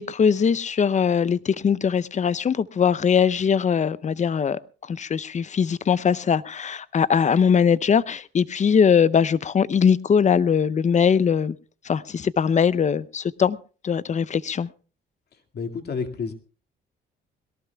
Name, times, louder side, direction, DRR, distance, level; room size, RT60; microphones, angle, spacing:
voice 1, 0.0-4.6 4.9-11.6 11.8-13.6 13.8-14.7, left 7 dB, 35° left, 0.6 m, -21 dB
voice 2, 15.5-16.3, left 5 dB, 55° left, 2.2 m, -29 dB
21.5 x 18.0 x 2.3 m
cardioid pair, 90°, 20 cm